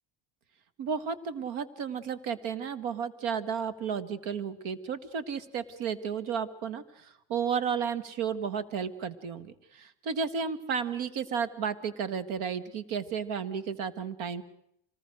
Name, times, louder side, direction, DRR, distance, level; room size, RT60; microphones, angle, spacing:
voice 1, 0.8-14.4, right 6 dB, 80° right, 14 dB, 2.0 m, -33 dB
25.5 x 20.0 x 6.4 m, 0.76 s
cardioid pair, 145°, 47 cm